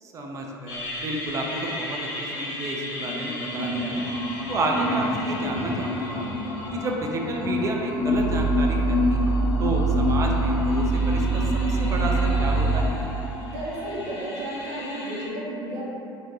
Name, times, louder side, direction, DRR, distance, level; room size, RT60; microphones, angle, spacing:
voice 1, 0.0-4.1 4.5-6.3 6.7-9.3 9.6-11.4 11.7-12.9, right 2 dB, 25° right, 0 dB, 0.3 m, -30 dB
sound 1, 0.7-15.3, left 2 dB, 55° left, 0.7 m, -29 dB
Growling, 8.0-12.9, right 4 dB, 80° left, 0.9 m, -24 dB
voice 2, 13.4-15.8, right 1 dB, 50° right, -6 dB, 0.7 m, -33 dB
2.6 x 2.1 x 2.9 m, 2.8 s
figure-of-eight pair, 70°, 13 cm